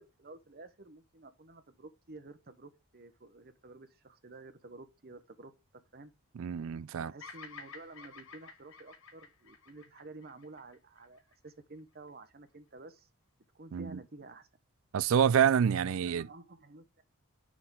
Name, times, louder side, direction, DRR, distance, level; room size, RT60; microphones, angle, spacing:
voice 1, 0.0-5.5 5.9-6.1 7.0-13.1 13.5-14.5 15.8-17.0, right 2 dB, 45° right, 0.9 m, -51 dB
voice 2, 6.4-7.1 13.7-14.0 14.9-16.3, right 8 dB, 65° right, 0.3 m, -27 dB
Bird vocalization bird call bird song, 7.2-11.5, left 5 dB, 60° left, 1.0 m, -51 dB
7.6 x 6.1 x 3.7 m
head